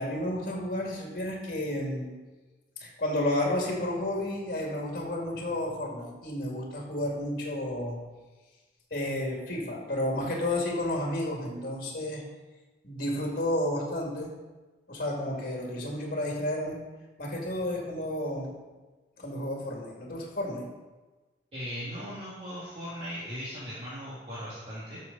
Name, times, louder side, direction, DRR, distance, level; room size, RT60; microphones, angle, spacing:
voice 1, 0.0-2.1 2.8-8.0 8.9-12.2 12.8-14.3 14.9-16.8 17.2-18.6 19.2-20.7, left 1 dB, 50° left, -1 dB, 2.3 m, -31 dB
voice 2, 21.5-25.0, equal, 35° right, -10 dB, 2.3 m, -38 dB
12.5 x 6.6 x 4.0 m, 1.2 s
head